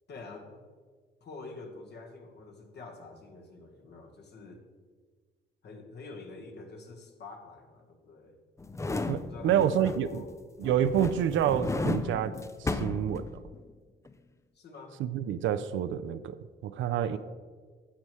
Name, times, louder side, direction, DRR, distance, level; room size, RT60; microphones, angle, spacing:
voice 1, 0.1-0.7 1.2-4.6 5.6-8.4 9.2-10.3 14.5-15.0 17.1-17.2, left 3 dB, 55° left, 3 dB, 1.4 m, -47 dB
sound 1, 8.6-10.3 10.6-13.7 14.1-14.2, left 3 dB, 15° left, 0.4 m, -34 dB
voice 2, 9.1-10.2 10.6-12.3 12.6-13.4 15.0-16.4 16.6-17.2, right 9 dB, 75° right, 12 dB, 0.5 m, -28 dB
9.9 x 7.4 x 3.1 m, 1.5 s
cardioid pair, 90°, 20 cm